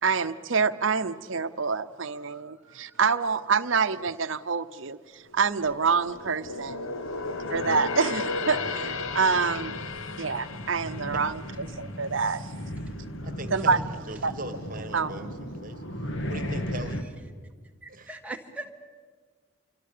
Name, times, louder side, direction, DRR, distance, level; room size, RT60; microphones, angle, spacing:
voice 1, 0.0-6.9 7.5-9.8 10.2-11.4 11.8-12.5 13.5-13.8 14.2-14.3 14.9-15.1, right 5 dB, 60° right, 9 dB, 0.8 m, -26 dB
voice 2, 2.1-3.0 16.9-17.0 17.8-18.7, right 2 dB, 5° right, 2 dB, 1.6 m, -42 dB
sound 1, 5.3-12.8 13.2-13.4 14.0-14.7 15.0-15.1, left 3 dB, 75° left, 1.2 m, -35 dB
sound 2, 7.1-17.0, equal, 60° left, 1.8 m, -37 dB
voice 3, 13.2-13.8 14.1-15.8 16.3-17.0 17.9-18.1, right 2 dB, 40° right, 8 dB, 1.7 m, -40 dB
27.0 x 24.5 x 6.8 m, 1.5 s
head